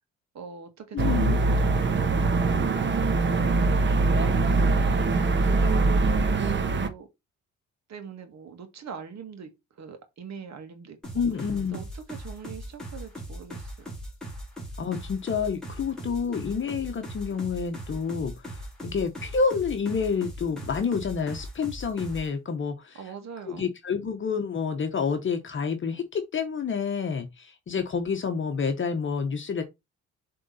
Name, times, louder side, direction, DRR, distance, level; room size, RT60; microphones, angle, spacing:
voice 1, 0.3-3.0 3.6-4.3 4.8-7.1 7.9-9.5 9.8-11.0 11.7-13.9 22.9-23.7, right 6 dB, 60° right, 2.1 m, -42 dB
voice 2, 0.9-1.4 11.1-11.8 14.8-23.0 23.5-29.6, left 5 dB, 40° left, 1.1 m, -29 dB
sound 1, 1.0-6.9, right 3 dB, 40° right, 1.2 m, -23 dB
sound 2, 11.0-22.3, equal, ahead, 3.3 m, -39 dB
7.4 x 3.9 x 4.1 m
cardioid pair, 90°, 30 cm